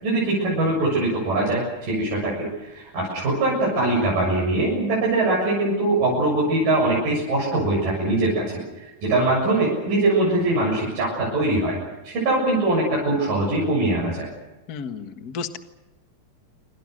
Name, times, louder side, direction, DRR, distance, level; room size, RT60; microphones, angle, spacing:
voice 1, 0.0-8.4 8.8-11.8 12.0-14.3, right 2 dB, 65° right, -4 dB, 9.0 m, -22 dB
voice 2, 14.7-15.6, left 5 dB, 50° left, 7 dB, 1.1 m, -32 dB
28.5 x 25.5 x 6.6 m, 1.0 s
omnidirectional pair, 4.2 m